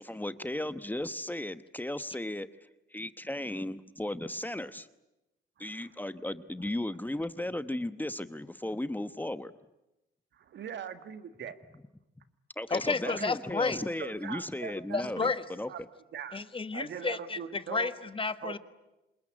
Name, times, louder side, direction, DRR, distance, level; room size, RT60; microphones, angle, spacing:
voice 1, 0.0-2.5 2.9-4.9 5.6-9.5 12.6-15.7, left 1 dB, 10° left, 13 dB, 1.0 m, -35 dB
voice 2, 5.6-5.9 10.3-11.6 13.0-13.3 14.0-15.3 15.7-15.8 16.1-16.4 16.7-17.9 18.4-18.6, right 8 dB, 65° right, 10 dB, 1.9 m, -41 dB
voice 3, 12.7-13.8 14.9-15.5 16.3-18.6, left 4 dB, 25° left, 12 dB, 1.3 m, -31 dB
27.5 x 21.0 x 9.9 m, 0.96 s
cardioid pair, 90°, 20 cm